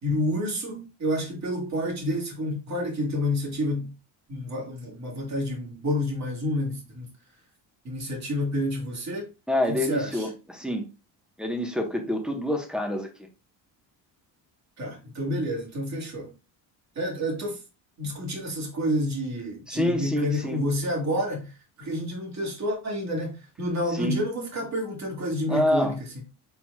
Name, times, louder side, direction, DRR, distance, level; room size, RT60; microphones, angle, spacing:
voice 1, 0.0-3.9 4.3-7.1 7.8-9.3 9.7-10.3 14.8-16.3 17.0-17.6 18.0-26.2, equal, 35° right, 2.2 m, -29 dB
voice 2, 9.5-10.9 11.4-13.3 19.7-20.6 23.9-24.2 25.5-26.0, left 1 dB, ahead, 1.3 m, -27 dB
4.6 x 4.1 x 2.4 m
cardioid pair, 95°, 45 cm